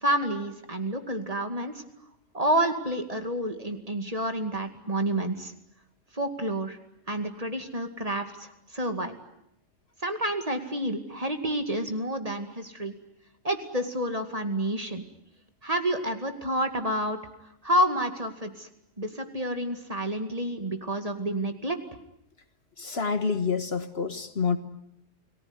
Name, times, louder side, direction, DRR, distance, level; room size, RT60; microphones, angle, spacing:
voice 1, 0.0-1.8 2.3-5.5 6.1-6.8 7.1-9.1 10.0-12.9 13.4-15.0 15.6-17.2 17.6-18.7 19.0-21.8, right 1 dB, 30° right, 6 dB, 2.4 m, -29 dB
voice 2, 22.8-24.6, left 5 dB, 55° left, 9 dB, 1.6 m, -28 dB
29.5 x 19.5 x 9.8 m, 0.78 s
omnidirectional pair, 1.3 m